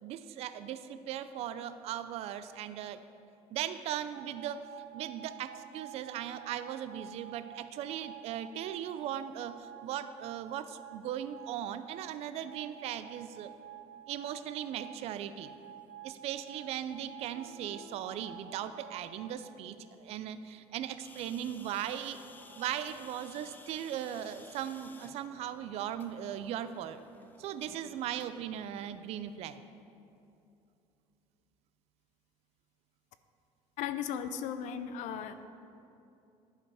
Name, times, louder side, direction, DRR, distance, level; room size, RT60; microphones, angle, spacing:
voice 1, 0.0-3.0 3.5-4.6 4.9-13.5 14.1-15.5 16.0-22.2 22.6-27.0 27.4-29.6, right 10 dB, 55° right, 12 dB, 0.4 m, -38 dB
sound 1, 4.1-19.3, right 11 dB, 85° right, 1.3 m, -50 dB
sound 2, 17.2-21.4 22.2-26.9, left 1 dB, 50° left, 1.4 m, -59 dB
sound 3, 21.0-28.4, left 3 dB, 15° left, 0.4 m, -55 dB
voice 2, 33.8-35.5, left 8 dB, 70° left, 11 dB, 0.5 m, -36 dB
11.0 x 5.3 x 4.8 m, 2.7 s
cardioid pair, 170°, 13 cm